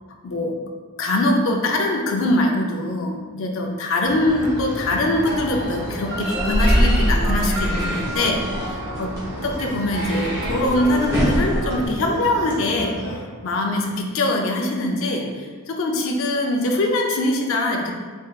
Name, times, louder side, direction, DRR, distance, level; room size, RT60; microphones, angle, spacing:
voice 1, 0.2-0.6 1.0-8.4 8.7-9.1 9.4-12.9 13.4-17.9, left 1 dB, 65° left, 1 dB, 0.5 m, -22 dB
sound 1, 4.0-13.1, equal, 45° left, 1.4 m, -33 dB
sound 2, 4.0-13.8, right 1 dB, 45° right, 0.7 m, -36 dB
sound 3, 4.3-11.9, equal, 15° right, 1.1 m, -25 dB
3.7 x 3.6 x 2.4 m, 1.5 s
head